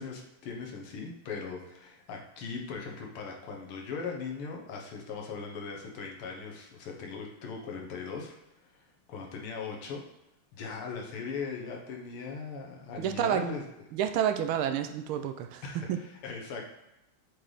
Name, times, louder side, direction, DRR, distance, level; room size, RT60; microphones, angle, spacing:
voice 1, 0.0-8.4 8.7-10.0 10.5-13.6 15.6-16.7, left 5 dB, 85° left, 0 dB, 2.0 m, -39 dB
voice 2, 13.0-13.5 13.9-15.6 15.9-16.0, right 9 dB, 80° right, 7 dB, 1.4 m, -29 dB
7.7 x 3.3 x 4.0 m, 0.90 s
omnidirectional pair, 2.4 m